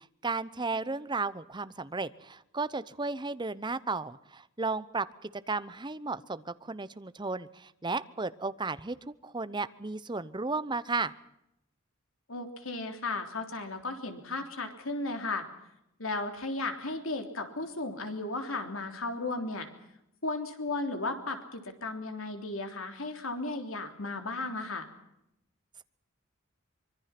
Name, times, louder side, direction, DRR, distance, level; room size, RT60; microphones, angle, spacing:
voice 1, 0.0-11.1, right 3 dB, 20° right, 14 dB, 0.8 m, -34 dB
voice 2, 12.3-15.5 16.0-19.7 20.2-24.9, left 2 dB, 75° left, 5 dB, 3.5 m, -35 dB
25.0 x 23.0 x 6.0 m, 0.81 s
head